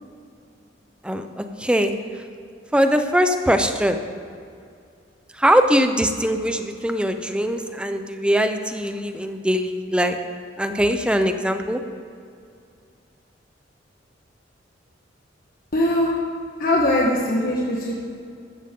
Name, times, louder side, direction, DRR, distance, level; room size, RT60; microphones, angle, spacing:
voice 1, 1.0-1.9 2.7-4.0 5.4-10.2 10.6-11.8, equal, 5° right, 7 dB, 0.7 m, -21 dB
voice 2, 15.7-16.1 16.6-17.9, left 1 dB, 50° left, -3 dB, 1.3 m, -20 dB
14.5 x 13.0 x 3.8 m, 2.3 s
head